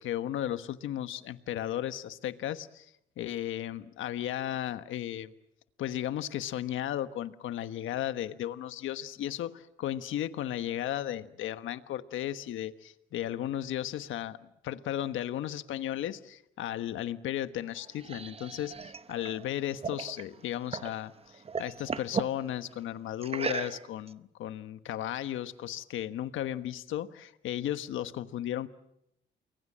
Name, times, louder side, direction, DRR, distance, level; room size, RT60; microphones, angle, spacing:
voice 1, 0.0-5.3 5.8-28.7, left 12 dB, 80° left, 11 dB, 1.3 m, -35 dB
sound 1, 17.6-21.0 21.3-22.4 23.2-24.1, right 5 dB, 30° right, 0.9 m, -37 dB
29.0 x 22.0 x 7.5 m, 0.81 s
cardioid pair, 90°, 20 cm